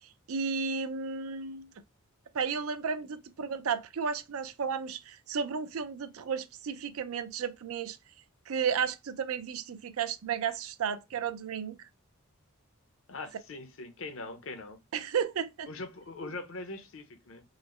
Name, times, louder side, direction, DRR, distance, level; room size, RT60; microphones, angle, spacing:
voice 1, 0.3-1.7 2.3-8.0 8.5-11.9 14.9-15.7, right 6 dB, 80° right, 0.4 m, -33 dB
voice 2, 13.1-14.8 15.7-17.4, left 2 dB, 65° left, 0.7 m, -41 dB
3.9 x 2.0 x 3.0 m
head